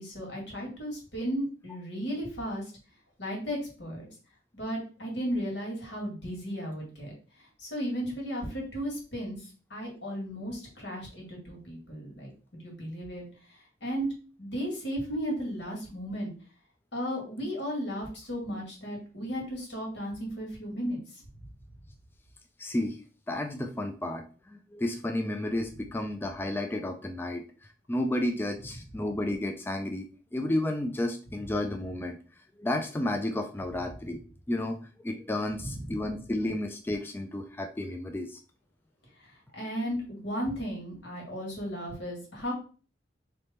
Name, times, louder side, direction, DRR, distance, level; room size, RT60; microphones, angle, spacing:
voice 1, 0.0-2.6 3.2-4.1 4.5-7.1 7.6-12.3 12.6-13.2 13.8-14.1 14.4-16.3 16.9-21.2 35.6-35.9 39.2-42.5, equal, 80° left, -2 dB, 2.1 m, -35 dB
voice 2, 22.6-23.0 23.3-24.2 24.5-27.4 27.9-30.1 30.3-32.2 32.6-34.2 34.5-34.8 35.0-38.4, left 1 dB, 10° left, 4 dB, 0.3 m, -31 dB
3.4 x 3.1 x 4.2 m, 0.38 s
head